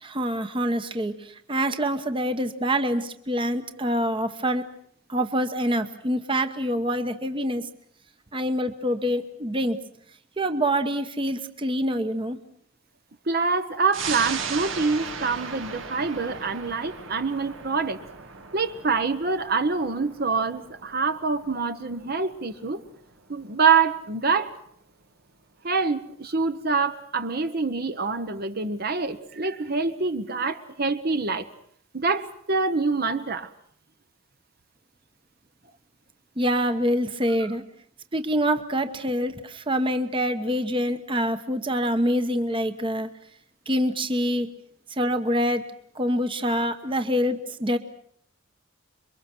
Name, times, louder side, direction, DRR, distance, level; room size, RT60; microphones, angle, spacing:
voice 1, 0.0-4.6 5.1-7.7 8.3-9.8 10.4-12.4 36.4-37.6 38.1-43.1 43.7-44.5 45.0-47.8, equal, 25° right, 9 dB, 1.1 m, -26 dB
voice 2, 13.3-18.0 18.5-22.8 23.3-24.6 25.6-31.5 31.9-33.5, right 4 dB, 50° right, 9 dB, 1.1 m, -25 dB
sound 1, 13.9-24.9 25.3-25.4, right 5 dB, 75° right, 2.1 m, -38 dB
27.5 x 23.5 x 6.2 m, 0.66 s
head